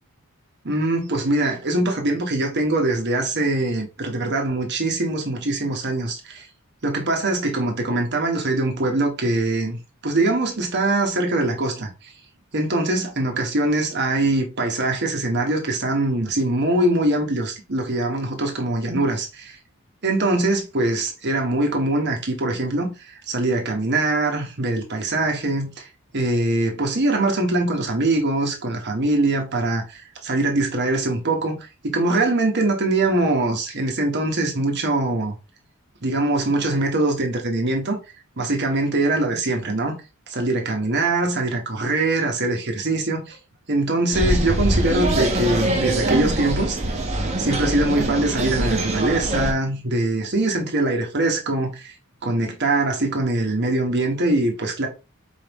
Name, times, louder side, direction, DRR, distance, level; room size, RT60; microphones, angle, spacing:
voice 1, 0.6-6.5 6.8-9.8 10.0-11.9 12.5-19.6 20.0-22.9 23.3-25.9 26.1-35.3 36.0-38.0 38.4-39.9 40.3-43.4 43.7-47.0 47.4-51.9 52.2-54.9, right 2 dB, 50° right, 1.1 m, -22 dB
sound 1, 44.1-49.5, right 1 dB, 30° right, 0.9 m, -23 dB
4.7 x 3.5 x 3.0 m
head